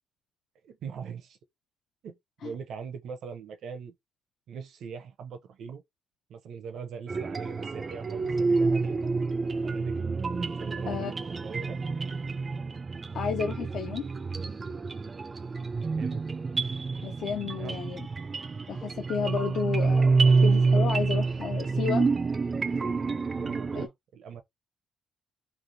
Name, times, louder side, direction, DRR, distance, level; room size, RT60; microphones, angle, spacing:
voice 1, 0.6-1.4 2.0-2.1 2.4-3.9 4.5-5.8 6.3-9.0 9.6-10.0 10.6-11.2 11.4-11.8 15.9-16.2 17.6-17.8 23.4-24.4, right 6 dB, 70° right, 0.6 m, -41 dB
sound 1, 7.1-23.9, right 4 dB, 35° right, 0.3 m, -28 dB
voice 2, 13.1-14.1 17.0-18.1 18.7-22.1 23.7-23.9, left 6 dB, 70° left, 0.5 m, -32 dB
3.2 x 2.4 x 2.6 m
cardioid pair, 90°, 0 cm